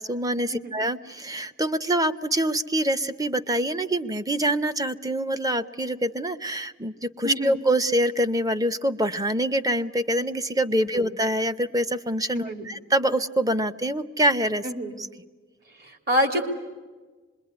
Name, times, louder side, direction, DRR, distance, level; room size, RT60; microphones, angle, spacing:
voice 1, 0.0-14.7 15.0-15.1, right 1 dB, 20° right, 11 dB, 0.8 m, -25 dB
voice 2, 7.2-7.5 10.9-11.0 12.3-12.7 14.6-14.9 16.1-16.5, equal, 50° right, 5 dB, 3.1 m, -26 dB
26.0 x 22.0 x 9.5 m, 1.3 s
head